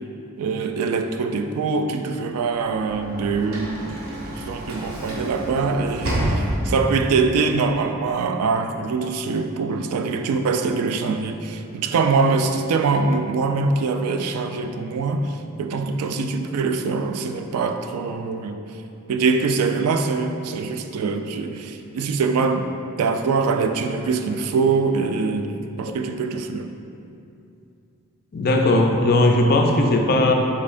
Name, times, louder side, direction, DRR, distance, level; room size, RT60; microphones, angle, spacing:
voice 1, 0.4-3.9 4.4-18.6 19.1-22.7 23.0-25.5 25.8-26.7, right 4 dB, 85° right, 6 dB, 0.3 m, -23 dB
Sliding door / Slam, 2.4-7.1, right 1 dB, 65° right, 0.7 m, -28 dB
voice 2, 28.3-30.3, left 2 dB, 45° left, 2 dB, 0.4 m, -18 dB
5.5 x 3.6 x 2.5 m, 2.6 s
head